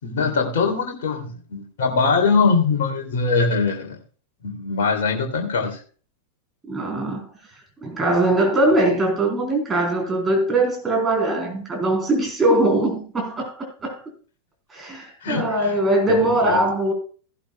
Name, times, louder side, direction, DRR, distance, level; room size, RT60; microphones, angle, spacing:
voice 1, 0.0-4.0 4.4-5.8 15.2-15.8 16.1-16.6, left 4 dB, 55° left, 2.9 m, -22 dB
voice 2, 6.7-7.3 7.8-14.0 14.7-16.9, right 1 dB, 15° right, 4.1 m, -21 dB
16.0 x 11.5 x 2.3 m
figure-of-eight pair, 90°, 0 cm